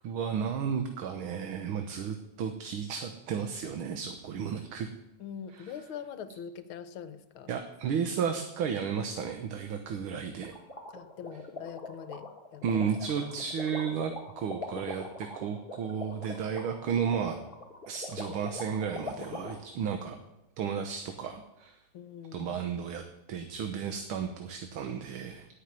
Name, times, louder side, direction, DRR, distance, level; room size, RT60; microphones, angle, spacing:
voice 1, 0.0-4.9 5.5-5.7 7.5-10.5 12.6-17.4 17.9-20.2 20.6-21.8 22.3-25.5, right 7 dB, 75° right, 6 dB, 1.9 m, -33 dB
voice 2, 5.2-7.5 10.9-12.9 13.2-13.3 21.9-22.6, left 8 dB, 75° left, 12 dB, 1.7 m, -43 dB
sound 1, 10.4-19.5, left 3 dB, 25° left, 2.3 m, -41 dB
16.5 x 6.6 x 9.6 m, 0.94 s
omnidirectional pair, 2.4 m